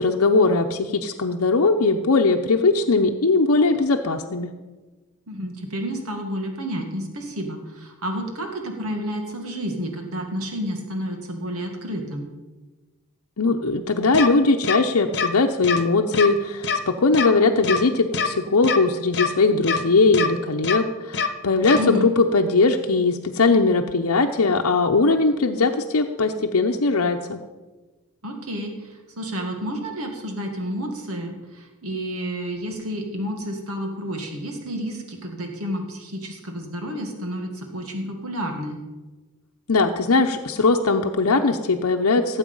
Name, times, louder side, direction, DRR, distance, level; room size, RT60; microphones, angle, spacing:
voice 1, 0.0-4.5 13.4-27.4 39.7-42.4, left 3 dB, 75° left, 3 dB, 0.8 m, -20 dB
voice 2, 5.3-12.3 21.7-22.1 28.2-38.8, equal, 70° right, 3 dB, 2.0 m, -30 dB
sound 1, 14.1-14.3 14.6-14.8 15.1-15.3 15.6-15.8 16.1-16.3 16.6-16.8 17.1-17.3 17.6-17.8 18.1-18.3 18.6-18.8 19.1-19.3 19.6-19.8 20.1-20.3 20.6-20.8 21.1-21.3 21.6-21.8, left 6 dB, 50° left, 1.1 m, -23 dB
17.5 x 8.2 x 5.5 m, 1.2 s
head